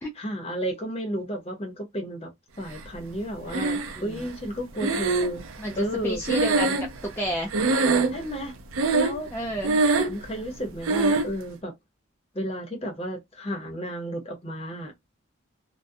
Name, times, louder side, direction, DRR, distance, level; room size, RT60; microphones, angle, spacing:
voice 1, 0.2-2.3 2.6-5.4 5.8-6.2 8.1-8.6 8.9-9.3 10.0-11.7 12.3-14.9, equal, 30° left, 0.7 m, -32 dB
Breathing, 3.5-4.2 4.8-7.3 7.5-8.3 8.7-9.3 9.6-10.3 10.8-11.3, right 3 dB, 75° right, 0.5 m, -23 dB
voice 2, 4.0-4.3 5.6-7.5 9.3-9.8, equal, 10° left, 0.3 m, -31 dB
2.3 x 2.1 x 2.5 m
head